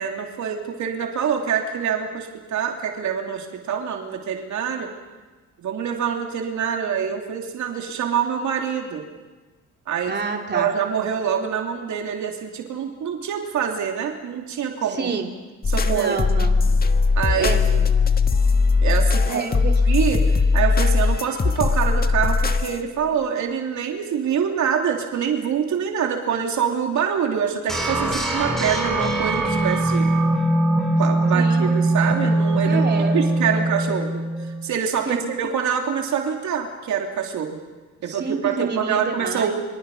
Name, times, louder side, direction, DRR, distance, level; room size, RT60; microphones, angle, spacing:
voice 1, 0.0-4.9 5.6-9.0 9.9-10.1 10.5-15.1 15.7-16.2 17.1-17.9 18.8-30.1 31.0-32.8 33.1-37.6 38.0-39.6, right 7 dB, 70° right, 2 dB, 3.1 m, -25 dB
voice 2, 10.1-10.7 14.9-15.3 15.8-16.6 17.4-17.6 19.3-19.7 31.3-31.8 32.6-33.6 35.1-35.2 38.1-39.6, right 5 dB, 35° right, 2 dB, 2.9 m, -28 dB
sound 1, 15.6-22.8, left 4 dB, 30° left, 1.6 m, -19 dB
sound 2, 27.7-34.6, right 2 dB, ahead, 6.5 m, -21 dB
26.0 x 26.0 x 5.6 m, 1.3 s
cardioid pair, 90°, 30 cm